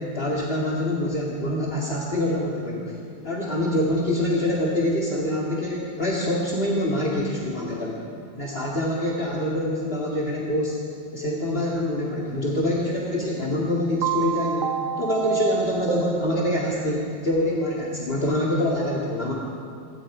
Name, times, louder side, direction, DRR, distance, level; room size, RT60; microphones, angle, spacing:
voice 1, 0.0-2.9 3.2-8.0 8.3-10.8 11.1-19.3, left 1 dB, 25° left, -4 dB, 1.4 m, -25 dB
sound 1, 14.0-16.9, right 9 dB, 80° right, 2.8 m, -28 dB
26.5 x 21.5 x 5.0 m, 2.4 s
omnidirectional pair, 4.2 m